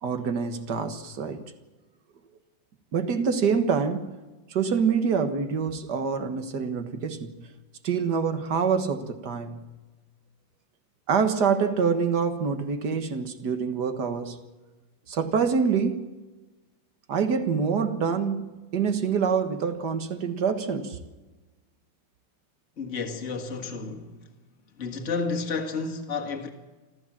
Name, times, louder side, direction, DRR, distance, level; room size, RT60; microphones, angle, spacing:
voice 1, 0.0-1.4 2.9-4.1 4.5-7.3 7.8-9.6 11.1-14.4 15.1-16.1 17.1-21.0, right 6 dB, 60° right, 2.0 m, -26 dB
voice 2, 22.8-24.3 24.8-26.5, left 4 dB, 40° left, 2.0 m, -31 dB
26.5 x 14.0 x 7.4 m
omnidirectional pair, 2.1 m